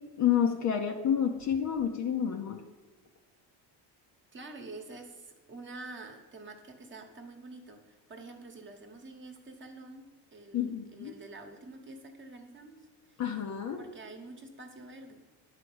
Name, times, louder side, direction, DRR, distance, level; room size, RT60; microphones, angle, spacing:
voice 1, 0.2-2.6 10.5-11.1 13.2-13.8, left 9 dB, 40° left, 5 dB, 0.7 m, -29 dB
voice 2, 4.3-12.7 13.1-13.2 13.8-15.2, right 2 dB, 25° right, 4 dB, 1.2 m, -47 dB
10.5 x 5.0 x 7.9 m, 1.2 s
cardioid pair, 160°, 47 cm